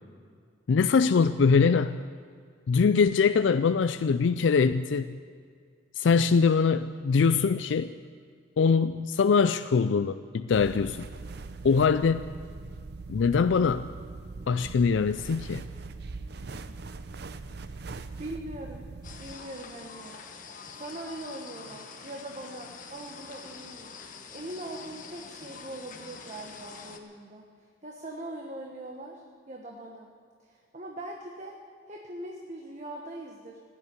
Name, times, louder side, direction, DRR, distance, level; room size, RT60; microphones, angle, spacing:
voice 1, 0.7-2.0 2.7-5.2 6.0-7.9 8.6-11.1 11.6-12.3 13.1-13.9 14.5-15.6, left 5 dB, 90° left, 12 dB, 0.4 m, -23 dB
sound 1, 10.5-19.3, right 3 dB, 60° right, 0.6 m, -41 dB
voice 2, 17.6-17.9 18.2-18.9 19.2-20.2 20.7-27.4 27.8-30.1 30.4-31.6 31.9-33.6, right 1 dB, 40° right, 1 dB, 1.2 m, -41 dB
sound 2, 19.0-27.0, left 5 dB, 45° left, 1.2 m, -45 dB
16.0 x 8.3 x 9.6 m, 2.1 s
head